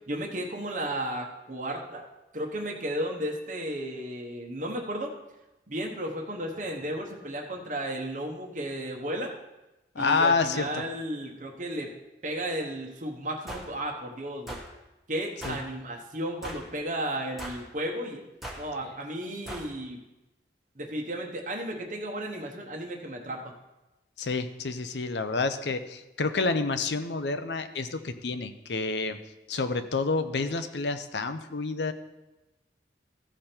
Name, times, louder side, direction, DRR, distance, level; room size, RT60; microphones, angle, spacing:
voice 1, 0.1-2.1 2.3-5.1 5.7-9.3 10.0-11.9 12.2-14.6 15.1-18.2 18.6-20.0 20.8-23.5, right 1 dB, 45° right, 1 dB, 1.0 m, -34 dB
voice 2, 9.9-10.8 15.4-15.6 24.2-29.2 29.5-31.9, left 4 dB, 75° left, 9 dB, 0.7 m, -28 dB
sound 1, 13.5-13.7 14.5-14.7 15.4-15.6 16.4-16.7 17.4-17.7 18.4-18.6 19.5-19.7, right 1 dB, ahead, 1.2 m, -39 dB
14.5 x 5.0 x 4.4 m, 1.0 s
head